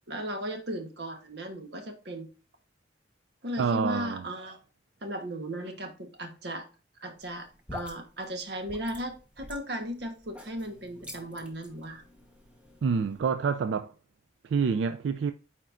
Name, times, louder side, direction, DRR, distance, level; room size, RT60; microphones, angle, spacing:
voice 1, 0.1-2.3 3.4-4.6 5.0-6.7 7.0-12.0, equal, 65° right, 1.1 m, -36 dB
voice 2, 3.6-4.2 12.8-13.9 14.4-15.3, right 5 dB, 85° right, 0.3 m, -27 dB
sound 1, 7.2-13.2, left 1 dB, 5° right, 1.0 m, -47 dB
9.1 x 4.3 x 2.5 m
head